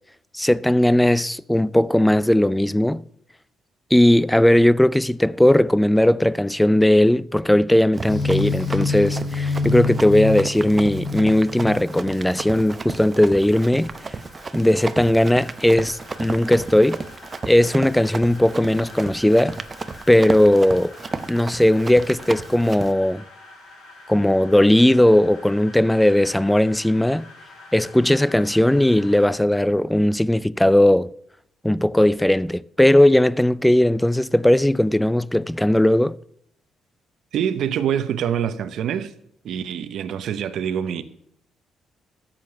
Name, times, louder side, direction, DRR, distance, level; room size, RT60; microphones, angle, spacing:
voice 1, 0.3-3.0 3.9-13.9 14.5-17.0 17.4-19.6 20.1-20.9 21.3-23.2 24.1-27.3 27.7-31.1 31.6-36.2, left 1 dB, 5° left, 0.4 m, -18 dB
Run, 7.9-22.9, right 4 dB, 30° right, 0.7 m, -34 dB
sound 1, 8.1-12.7, left 4 dB, 30° left, 0.9 m, -26 dB
sound 2, 11.2-29.3, left 2 dB, 85° left, 4.9 m, -46 dB
voice 2, 37.3-39.1 39.4-41.0, right 9 dB, 75° right, 0.7 m, -25 dB
11.5 x 7.5 x 7.5 m
cardioid pair, 90°, 0 cm